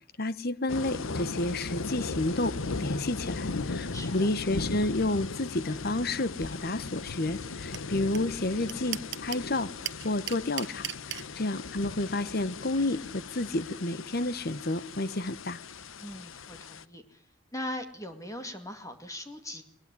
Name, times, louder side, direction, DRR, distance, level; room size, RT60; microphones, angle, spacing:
voice 1, 0.2-15.6, left 2 dB, 50° left, 1.1 m, -31 dB
sound 1, 0.7-16.8, left 3 dB, 90° left, 1.0 m, -38 dB
voice 2, 3.9-4.3 16.0-17.2 17.5-19.6, left 1 dB, 15° left, 2.2 m, -40 dB
sound 2, 7.7-7.8 8.1-8.2 8.4-9.5 9.8-11.2, right 13 dB, 60° right, 1.0 m, -34 dB
21.0 x 20.5 x 9.7 m
head